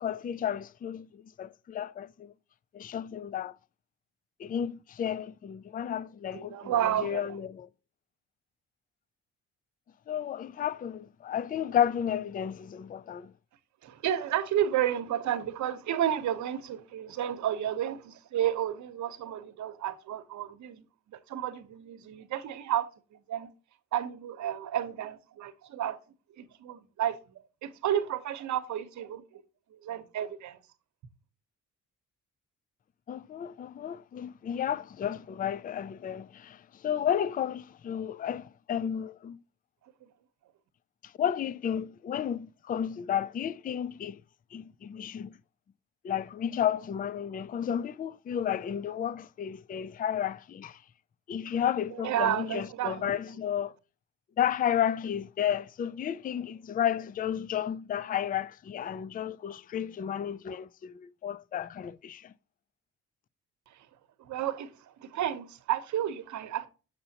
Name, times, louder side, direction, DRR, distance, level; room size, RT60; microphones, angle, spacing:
voice 1, 0.0-2.3 2.7-3.5 4.4-6.7 7.0-7.7 10.1-13.3 33.1-39.4 41.2-44.2 44.5-45.4 46.0-50.8 51.3-53.7 54.4-62.3, left 9 dB, 30° left, 0.4 m, -32 dB
voice 2, 6.3-7.4 13.8-23.5 23.9-26.0 26.4-29.4 29.7-30.6 40.0-40.1 51.9-53.1 63.7-63.9 64.2-66.7, right 11 dB, 70° right, 0.9 m, -32 dB
6.8 x 6.7 x 2.8 m
cardioid pair, 90°, 30 cm